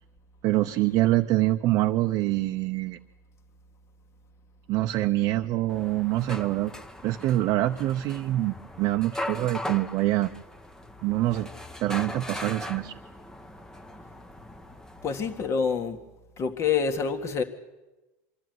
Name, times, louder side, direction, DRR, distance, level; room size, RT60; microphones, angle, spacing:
voice 1, 0.4-3.0 4.7-6.7 7.0-10.3 11.0-11.5 11.8-13.0, right 16 dB, 50° right, 4 dB, 0.7 m, -25 dB
sound 1, 5.7-15.5, left 1 dB, 5° left, 1.0 m, -39 dB
voice 2, 15.0-16.0 16.4-17.4, left 6 dB, 35° left, 7 dB, 1.9 m, -26 dB
25.5 x 12.5 x 9.4 m, 1.1 s
supercardioid pair, 125°, 8 cm